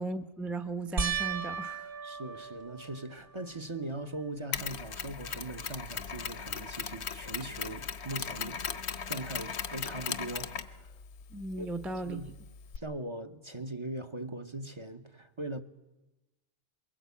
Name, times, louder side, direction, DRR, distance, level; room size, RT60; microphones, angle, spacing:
voice 1, 0.0-1.9 11.3-12.3, right 3 dB, ahead, 0.7 m, -36 dB
sound 1, 1.0-3.6 4.2-4.8 5.1-5.2 8.4-8.5, right 6 dB, 55° right, 1.1 m, -37 dB
voice 2, 2.0-8.6 9.1-10.9 11.6-11.7 11.9-12.3 12.8-15.6, right 2 dB, 25° right, 1.0 m, -40 dB
Mechanisms, 4.5-12.8, left 7 dB, 70° left, 1.2 m, -38 dB
22.5 x 19.5 x 8.4 m
omnidirectional pair, 1.2 m